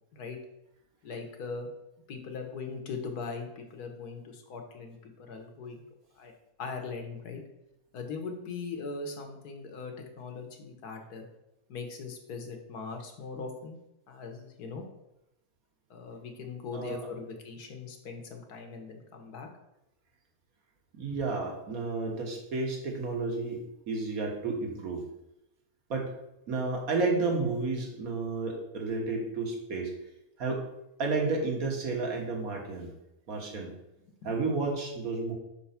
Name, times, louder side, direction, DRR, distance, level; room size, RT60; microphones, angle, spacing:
voice 1, 1.0-1.7 2.1-5.8 6.2-6.3 6.6-7.4 7.9-11.3 11.7-13.8 14.1-14.8 15.9-19.5 34.2-34.3, left 4 dB, 80° left, 4 dB, 1.5 m, -40 dB
voice 2, 16.7-17.1 20.9-25.0 25.9-26.1 26.5-29.9 30.4-30.7 31.0-32.9 33.3-33.7 34.2-35.3, right 3 dB, 65° right, 1 dB, 1.7 m, -31 dB
5.1 x 4.6 x 5.7 m, 0.89 s
omnidirectional pair, 1.6 m